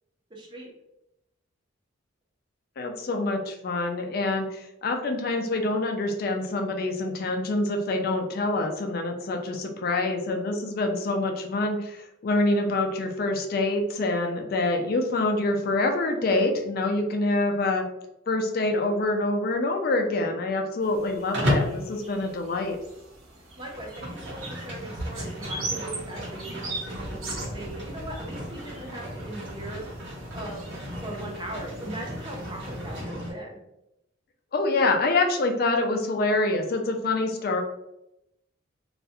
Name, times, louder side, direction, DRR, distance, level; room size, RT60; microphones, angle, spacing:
voice 1, 0.3-0.7 23.6-30.6 30.9-33.6, right 1 dB, 25° right, -1 dB, 0.5 m, -39 dB
voice 2, 2.8-17.8 18.3-22.8 34.5-37.6, left 2 dB, 45° left, 3 dB, 0.3 m, -26 dB
sound 1, 20.8-33.0, right 3 dB, 85° right, 0.6 m, -42 dB
Livestock farm animals working animals, 21.3-21.8 23.5-33.3, equal, 60° right, 0.9 m, -33 dB
2.3 x 2.1 x 2.6 m, 0.86 s
head